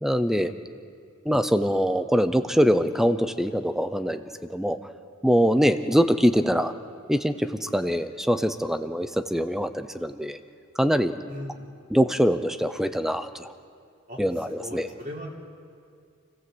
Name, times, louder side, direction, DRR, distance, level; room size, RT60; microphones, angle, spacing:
voice 1, 0.0-0.5 1.2-4.8 5.2-6.7 7.1-10.4 10.8-11.2 11.9-13.5 14.2-14.9, equal, ahead, 11 dB, 0.7 m, -23 dB
voice 2, 11.3-11.6 14.1-15.3, left 1 dB, 40° right, -3 dB, 3.4 m, -39 dB
28.5 x 15.5 x 7.9 m, 2.3 s
head